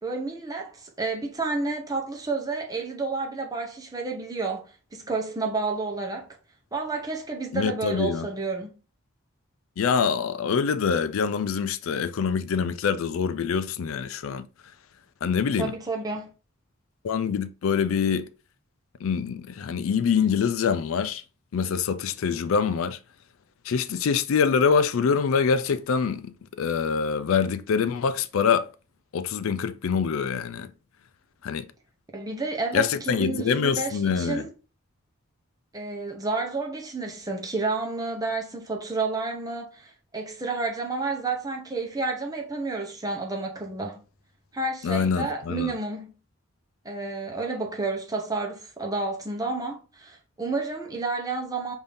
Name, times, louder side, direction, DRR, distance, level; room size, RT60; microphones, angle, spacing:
voice 1, 0.0-6.3 6.7-8.8 15.6-16.3 32.1-34.5 35.7-44.0 44.5-46.1 46.8-51.7, right 3 dB, 20° right, 0.8 m, -30 dB
voice 2, 7.5-8.3 9.8-14.5 15.2-15.7 17.0-18.3 19.0-21.2 21.5-23.0 23.7-28.7 29.1-30.7 31.4-31.7 32.7-34.4 44.8-45.7, left 6 dB, 80° left, 0.4 m, -25 dB
5.3 x 2.7 x 3.5 m
head